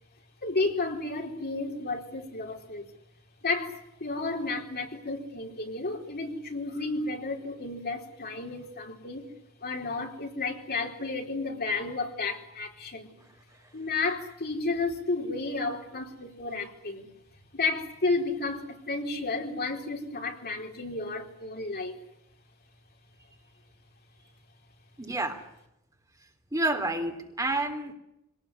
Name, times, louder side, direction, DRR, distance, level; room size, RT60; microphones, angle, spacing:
voice 1, 0.4-2.8 3.4-9.3 9.6-13.2 13.7-17.1 17.5-21.9, left 3 dB, 45° left, 2 dB, 4.4 m, -32 dB
voice 2, 25.0-25.4 26.5-27.9, right 2 dB, 15° right, 4 dB, 3.2 m, -29 dB
26.0 x 19.0 x 9.9 m, 0.83 s
head